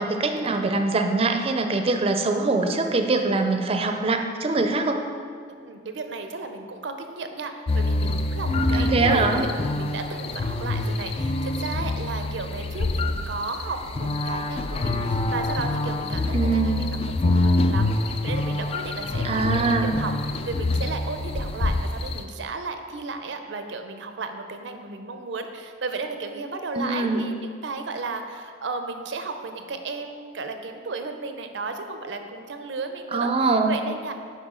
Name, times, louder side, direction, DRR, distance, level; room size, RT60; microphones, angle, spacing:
voice 1, 0.0-5.0 8.7-9.4 16.3-16.9 19.2-20.0 26.7-27.3 33.1-33.7, right 3 dB, 35° right, 5 dB, 0.5 m, -23 dB
voice 2, 5.6-34.1, right 3 dB, 75° right, 7 dB, 0.6 m, -34 dB
sound 1, 7.7-22.2, left 2 dB, 35° left, 0.3 m, -26 dB
8.1 x 5.3 x 3.7 m, 2.1 s
head